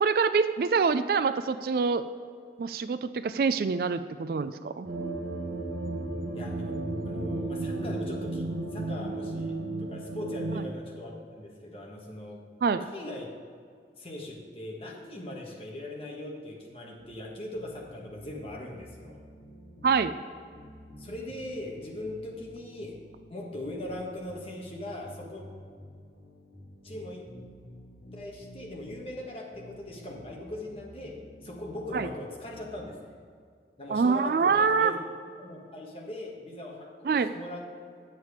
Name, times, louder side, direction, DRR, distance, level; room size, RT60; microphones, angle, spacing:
voice 1, 0.0-2.0 2.6-4.9 12.6-12.8 19.8-20.1 31.9-32.1 33.9-34.9 37.0-37.3, right 5 dB, 55° right, 12 dB, 0.3 m, -25 dB
sound 1, 4.8-10.7, right 2 dB, 75° right, 1.2 m, -33 dB
voice 2, 6.3-6.8 7.0-12.4 12.8-13.3 14.0-19.2 21.0-23.0 23.3-25.4 26.8-27.3 28.1-33.1 33.8-35.0 35.4-37.7, left 1 dB, 30° left, -1 dB, 1.4 m, -40 dB
sound 2, 17.0-32.9, equal, 65° left, 2.4 m, -50 dB
8.9 x 7.4 x 4.9 m, 2.2 s
head